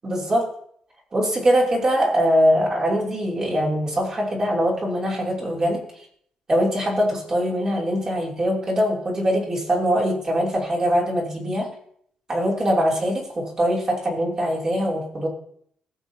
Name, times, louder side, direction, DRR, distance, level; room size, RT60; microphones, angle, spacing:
voice 1, 0.0-0.5 1.1-5.8 6.5-11.7 12.3-15.3, equal, 30° right, -3 dB, 3.2 m, -22 dB
18.5 x 7.5 x 2.9 m, 0.65 s
cardioid pair, 150°, 2 cm